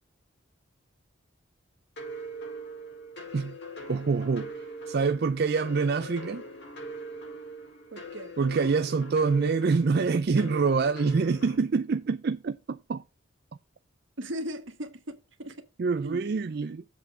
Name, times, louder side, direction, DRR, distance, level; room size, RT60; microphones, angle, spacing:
sound 1, 2.0-11.6, right 1 dB, 55° left, 4.9 m, -42 dB
voice 1, 3.9-6.4 8.4-13.0 15.8-16.8, right 4 dB, 50° right, 0.4 m, -26 dB
voice 2, 7.9-8.3 14.2-15.6 16.0-16.2, equal, 65° right, 1.5 m, -38 dB
7.7 x 4.7 x 6.0 m
head